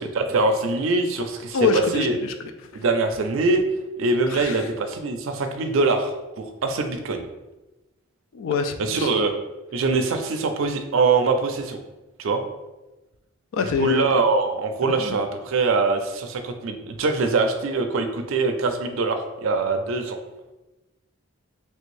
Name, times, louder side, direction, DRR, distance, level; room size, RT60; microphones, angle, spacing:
voice 1, 0.2-1.6 1.9-2.1 2.7-3.6 4.0-7.2 8.8-9.3 9.7-11.8 12.2-12.4 13.8-20.2, right 3 dB, 70° right, 6 dB, 0.4 m, -23 dB
voice 2, 1.5-2.3 2.7-2.8 4.3-4.7 8.3-9.1 13.5-14.1 14.8-15.2, left 5 dB, 70° left, 7 dB, 0.3 m, -25 dB
3.3 x 2.5 x 3.1 m, 1.1 s
head